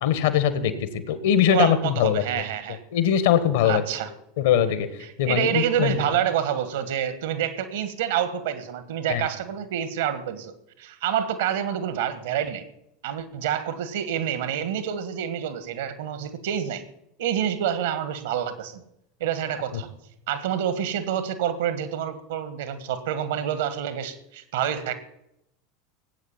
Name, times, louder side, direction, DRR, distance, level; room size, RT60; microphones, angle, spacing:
voice 1, 0.0-2.2 2.9-3.8 4.4-4.9 5.2-6.0 9.1-9.2, left 9 dB, 60° left, 12 dB, 1.6 m, -21 dB
voice 2, 1.5-2.8 3.7-4.1 5.0-10.5 10.8-12.6 13.0-16.8 17.2-18.8 19.2-19.9 20.3-24.9, right 9 dB, 65° right, 12 dB, 1.6 m, -27 dB
18.0 x 8.5 x 7.4 m, 0.82 s
figure-of-eight pair, 80°, 0 cm